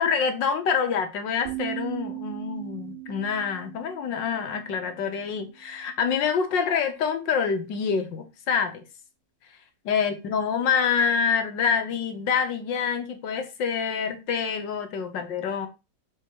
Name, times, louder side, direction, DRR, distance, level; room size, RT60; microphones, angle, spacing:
voice 1, 0.0-8.8 9.9-15.7, left 6 dB, 85° left, 1.8 m, -26 dB
sound 1, 1.4-5.3, right 19 dB, 60° right, 0.9 m, -38 dB
6.4 x 4.3 x 4.6 m
omnidirectional pair, 1.9 m